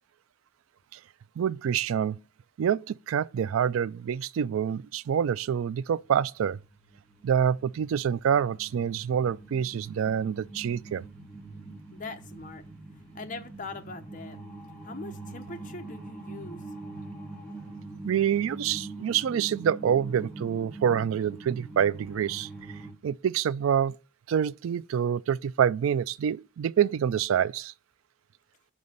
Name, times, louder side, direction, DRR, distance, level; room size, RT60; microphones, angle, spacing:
voice 1, 1.4-2.2 2.6-6.6 7.2-11.1 18.0-22.5 23.0-24.0 24.3-27.7, right 8 dB, 80° right, 0.3 m, -26 dB
sound 1, 6.3-22.9, right 2 dB, 5° left, 1.7 m, -43 dB
voice 2, 11.9-12.6 13.1-14.4 14.8-16.6, left 3 dB, 40° left, 0.9 m, -41 dB
5.5 x 5.1 x 6.5 m
head